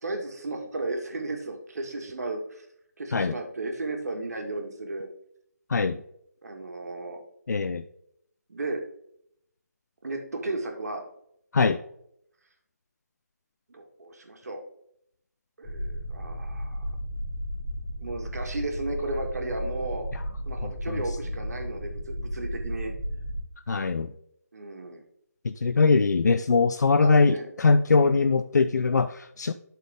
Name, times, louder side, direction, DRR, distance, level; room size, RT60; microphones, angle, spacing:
voice 1, 0.0-2.7 3.0-5.1 6.4-7.2 8.5-8.8 10.0-11.0 13.7-14.6 15.6-16.9 18.0-20.0 20.4-22.9 24.5-25.0 27.0-27.5 28.0-28.2, right 2 dB, 65° right, 3 dB, 1.8 m, -34 dB
voice 2, 5.7-6.0 7.5-7.8 11.5-11.8 20.1-20.2 20.6-21.0 23.7-24.1 25.4-29.5, left 4 dB, 85° left, 10 dB, 0.5 m, -22 dB
sound 1, 15.6-23.4, equal, 25° left, 2.7 m, -34 dB
11.5 x 4.3 x 3.6 m, 0.72 s
hypercardioid pair, 170°, 9 cm